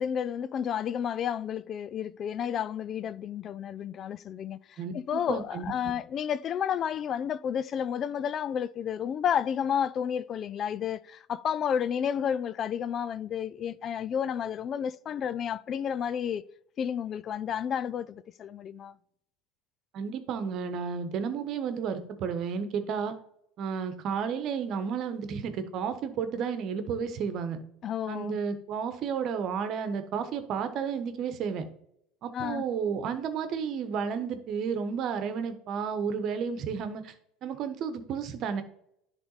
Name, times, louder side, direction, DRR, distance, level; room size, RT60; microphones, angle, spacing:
voice 1, 0.0-16.4 16.8-18.9 27.8-28.4 32.3-32.6, left 8 dB, 45° left, 0.4 m, -31 dB
voice 2, 4.8-5.7 19.9-23.2 23.6-27.6 28.1-31.6 32.2-37.1 37.4-38.6, right 6 dB, 50° right, 1.1 m, -32 dB
10.5 x 3.5 x 4.1 m
hypercardioid pair, 85°, 0 cm